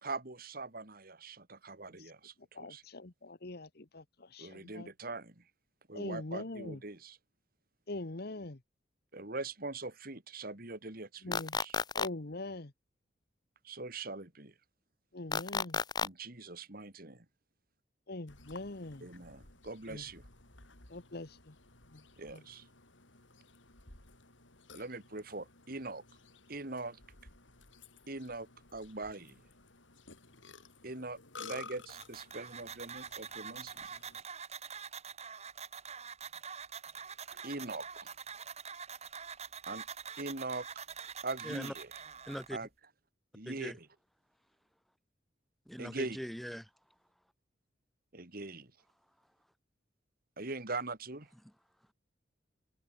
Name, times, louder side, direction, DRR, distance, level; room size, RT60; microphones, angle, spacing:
voice 1, 0.0-2.8 4.4-5.4 5.9-7.2 9.1-11.7 13.6-14.5 16.0-17.2 19.0-20.2 22.2-22.6 24.7-26.0 26.5-27.0 28.1-29.4 30.8-33.7 37.3-38.1 39.7-39.8 40.2-40.6 41.2-41.9 42.5-42.7 43.3-43.7 45.8-46.2 48.1-48.7 50.4-51.3, right 3 dB, 50° right, 2.8 m, -42 dB
voice 2, 2.5-4.9 5.9-6.8 7.9-8.6 11.2-11.6 11.9-12.7 15.1-15.8 18.1-19.1 19.9-20.1 20.9-21.5 21.9-22.0 22.3-22.4, left 2 dB, 55° left, 1.3 m, -43 dB
sound 1, 11.3-12.1 15.3-16.1, left 5 dB, 20° left, 0.6 m, -32 dB
Burping eructation, 18.3-34.2, left 4 dB, 85° left, 7.3 m, -55 dB
sound 2, 31.9-42.5, right 6 dB, 35° right, 5.7 m, -45 dB
voice 3, 41.4-41.7 42.3-42.6 43.5-43.8 45.7-46.7 51.4-51.5, equal, ahead, 1.7 m, -41 dB
head